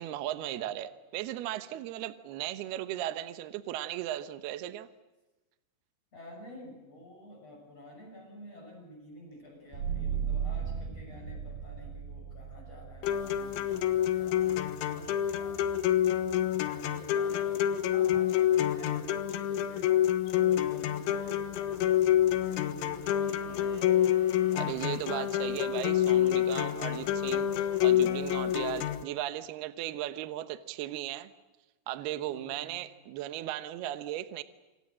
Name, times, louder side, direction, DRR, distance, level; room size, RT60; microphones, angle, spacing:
voice 1, 0.0-4.9 24.5-31.3 31.9-34.4, right 13 dB, 75° right, 11 dB, 2.4 m, -36 dB
voice 2, 6.1-15.8 16.6-19.9 20.2-24.0 32.2-32.8, left 1 dB, 30° left, 2 dB, 7.3 m, -50 dB
sound 1, 9.7-21.0, right 7 dB, 50° right, 6.5 m, -40 dB
sound 2, 13.0-29.0, left 11 dB, 70° left, 3.5 m, -27 dB
sound 3, 23.0-29.4, right 3 dB, 35° right, 3.2 m, -52 dB
27.5 x 26.0 x 7.6 m, 1.1 s
omnidirectional pair, 5.9 m